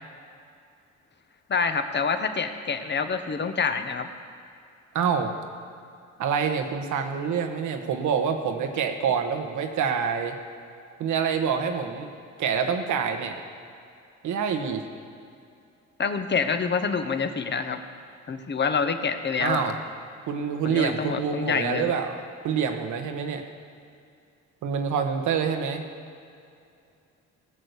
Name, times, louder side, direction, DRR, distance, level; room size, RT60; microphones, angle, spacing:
voice 1, 1.5-4.1 16.0-17.8 18.3-19.7 20.6-21.9, left 5 dB, 35° left, 8 dB, 1.1 m, -27 dB
voice 2, 4.9-5.3 6.2-10.4 11.0-12.1 12.4-13.4 14.2-14.8 19.4-19.7 20.3-22.2 22.4-23.4 24.6-25.8, right 6 dB, 75° right, 5 dB, 1.4 m, -26 dB
18.0 x 6.5 x 8.3 m, 2.4 s
cardioid pair, 90°, 30 cm